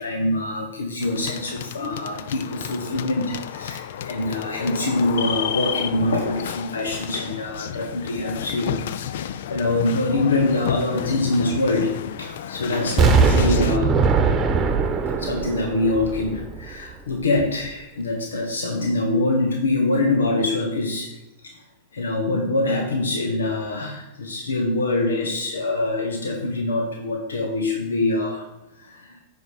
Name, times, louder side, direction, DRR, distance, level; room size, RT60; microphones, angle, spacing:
voice 1, 0.0-8.8 9.1-9.2 9.5-14.0 15.2-21.1 21.4-21.6 21.9-28.5 28.8-29.2, left 2 dB, 85° left, 2 dB, 1.1 m, -24 dB
sound 1, 1.0-13.8, left 10 dB, 70° left, 0.4 m, -32 dB
Explosion, 13.0-16.9 17.4-17.5, right 5 dB, 25° right, 1.0 m, -20 dB
9.3 x 5.1 x 4.9 m, 0.93 s
hypercardioid pair, 105°, 0 cm